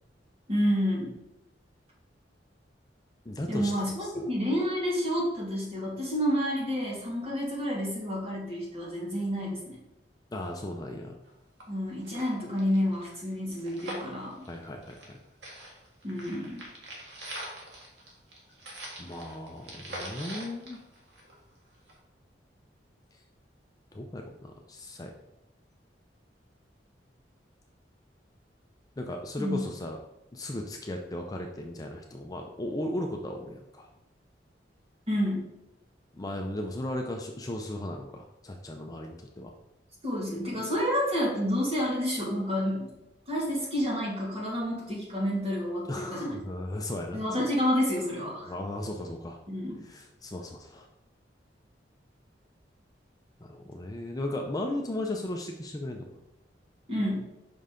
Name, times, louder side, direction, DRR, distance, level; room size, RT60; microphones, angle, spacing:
voice 1, 0.5-1.1 3.5-9.8 11.7-14.4 16.0-16.6 29.4-29.6 35.1-35.4 40.0-42.9 43.3-46.4 47.1-48.5 49.5-49.8 56.9-57.2, equal, 35° right, -4 dB, 2.2 m, -29 dB
voice 2, 3.3-3.7 4.0-4.3 10.3-11.2 14.5-15.2 19.0-20.8 23.9-25.1 29.0-30.0 30.3-33.9 36.1-39.5 45.9-47.2 48.4-49.4 49.8-50.9 53.4-56.1, left 1 dB, 20° left, 2 dB, 0.5 m, -36 dB
sound 1, 11.2-11.3 11.6-11.7 12.0-15.2 15.4-21.5 21.9-22.0, right 1 dB, 85° right, 1.8 m, -43 dB
5.5 x 5.3 x 3.8 m, 0.91 s
head